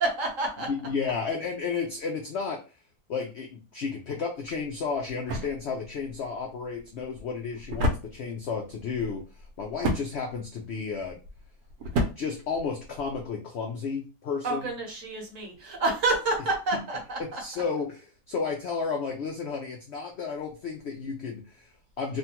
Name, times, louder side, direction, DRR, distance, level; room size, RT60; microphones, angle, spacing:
voice 1, 0.0-0.7 14.4-17.4, right 2 dB, 55° right, 0 dB, 1.2 m, -28 dB
voice 2, 0.7-2.6 3.1-11.2 12.2-14.6 17.4-17.9 18.3-22.2, left 5 dB, 80° left, 1 dB, 0.6 m, -32 dB
sound 1, 4.4-13.3, equal, 75° right, 1.2 m, -34 dB
3.3 x 2.2 x 2.8 m, 0.32 s
omnidirectional pair, 1.7 m